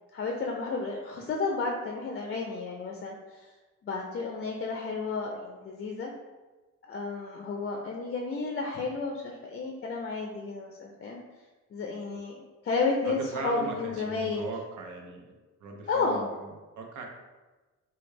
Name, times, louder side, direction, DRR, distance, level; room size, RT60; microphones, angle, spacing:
voice 1, 0.1-3.5 3.8-6.1 6.9-11.2 11.7-14.4 15.9-16.3, left 4 dB, 40° left, 1 dB, 0.4 m, -32 dB
voice 2, 13.0-15.3 15.6-16.5 16.8-17.1, right 3 dB, 80° right, 2 dB, 0.6 m, -39 dB
3.2 x 2.2 x 3.2 m, 1.2 s
cardioid pair, 90°, 30 cm